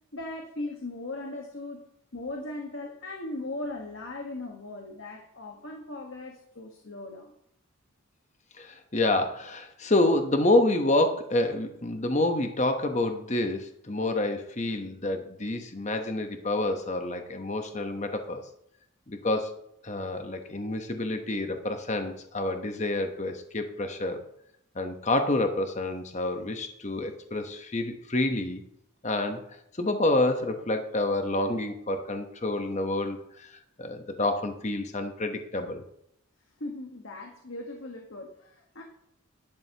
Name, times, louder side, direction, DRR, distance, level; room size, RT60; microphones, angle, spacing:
voice 1, 0.1-1.8 2.1-7.3 36.6-38.8, left 2 dB, 60° left, 1 dB, 1.4 m, -38 dB
voice 2, 8.5-18.4 19.1-19.6 19.8-24.2 24.7-28.6 29.0-35.8, left 2 dB, 35° left, 6 dB, 1.0 m, -28 dB
11.5 x 11.5 x 2.9 m, 0.73 s
head